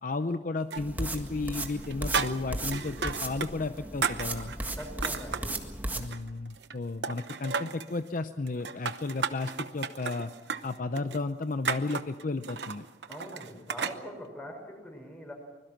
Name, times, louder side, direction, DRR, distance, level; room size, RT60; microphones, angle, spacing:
voice 1, 0.0-4.5 5.9-10.3 10.6-12.8, left 3 dB, 50° left, 9 dB, 0.7 m, -33 dB
sound 1, 0.7-1.3 1.5-3.5 3.8-5.6 6.0-6.8 7.0-7.9 8.5-14.0, right 5 dB, 75° right, 0.9 m, -34 dB
sound 2, 0.8-6.1, right 1 dB, 10° right, 1.7 m, -36 dB
voice 2, 4.7-5.5 13.1-15.3, equal, 10° left, 2 dB, 6.0 m, -43 dB
25.0 x 21.5 x 6.0 m, 1.2 s
head